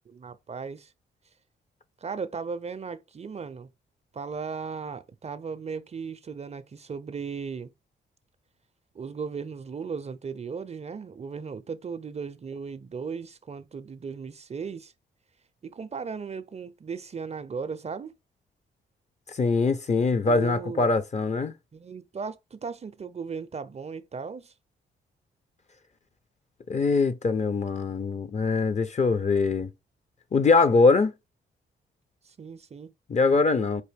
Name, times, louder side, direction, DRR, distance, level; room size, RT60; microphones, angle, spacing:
voice 1, 0.1-0.9 2.0-3.7 4.1-7.7 8.9-14.9 15.6-18.1 20.3-20.9 21.7-24.5 32.2-32.9, right 5 dB, 35° right, 0.5 m, -36 dB
voice 2, 19.3-21.5 26.7-29.7 30.3-31.1 33.1-33.8, left 4 dB, 35° left, 0.6 m, -23 dB
4.7 x 2.6 x 3.4 m
cardioid pair, 65°, 19 cm